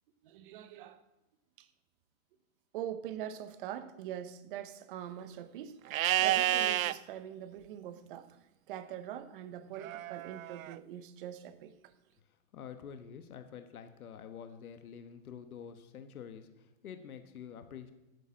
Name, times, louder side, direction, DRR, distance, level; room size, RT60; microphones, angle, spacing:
voice 1, 0.2-1.0 1.6-1.7 2.7-8.4 8.7-11.8, right 10 dB, 40° right, 0.8 m, -43 dB
Livestock farm animals working animals, 5.9-6.9 9.8-10.7, right 14 dB, 70° right, 0.5 m, -30 dB
voice 2, 12.5-17.9, left 8 dB, 85° left, 1.2 m, -47 dB
9.0 x 6.6 x 7.4 m
hypercardioid pair, 145°, 42 cm